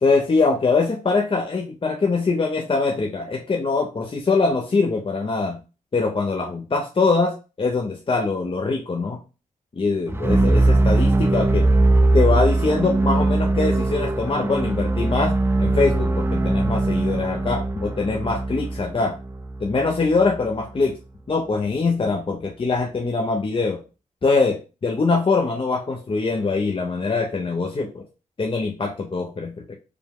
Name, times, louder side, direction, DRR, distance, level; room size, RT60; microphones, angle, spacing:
voice 1, 0.0-5.6 5.9-9.2 9.8-11.7 12.1-19.1 19.6-21.0 21.3-23.8 24.2-28.0 28.4-29.7, left 4 dB, 40° left, 2 dB, 0.6 m, -23 dB
sound 1, 10.1-20.1, right 2 dB, 15° right, 0.4 m, -20 dB
5.0 x 2.2 x 3.4 m, 0.32 s
cardioid pair, 75°, 14 cm